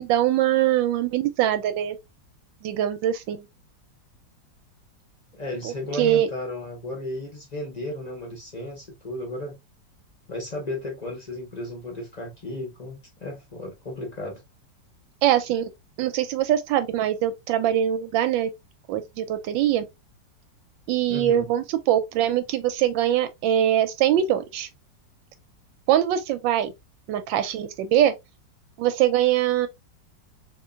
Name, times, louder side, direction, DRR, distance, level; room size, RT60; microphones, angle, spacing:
voice 1, 0.0-2.0 2.6-3.5 5.6-6.3 15.2-15.7 16.0-18.5 18.9-19.8 20.9-24.7 25.9-26.7 27.1-28.1 28.8-29.7, right 11 dB, 90° right, 1.3 m, -23 dB
voice 2, 5.3-9.6 10.3-14.4 21.1-21.5, left 1 dB, 35° left, 0.7 m, -34 dB
3.7 x 2.9 x 2.3 m
omnidirectional pair, 2.0 m